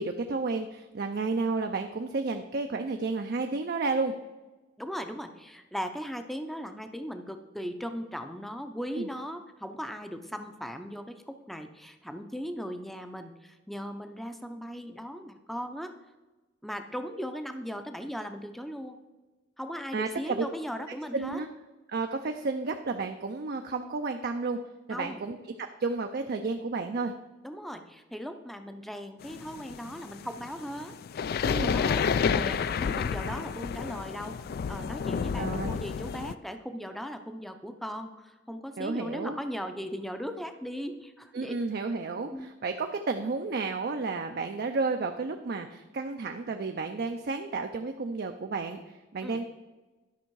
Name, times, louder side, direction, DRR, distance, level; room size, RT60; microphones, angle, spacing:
voice 1, 0.0-4.1 9.0-9.1 19.9-20.4 21.1-21.5 21.9-24.6 24.9-27.1 31.4-31.8 35.4-35.8 38.8-39.4 41.3-48.8 49.1-49.5, right 3 dB, 55° right, 5 dB, 0.5 m, -31 dB
voice 2, 4.8-15.9 16.6-19.0 19.6-21.4 24.9-25.2 27.4-31.0 31.3-34.4 34.7-41.5 42.3-42.5 49.2-49.4, equal, ahead, 7 dB, 0.5 m, -38 dB
sound 1, 29.2-36.3, left 6 dB, 55° left, 0.3 m, -30 dB
11.5 x 5.5 x 4.7 m, 1.2 s
head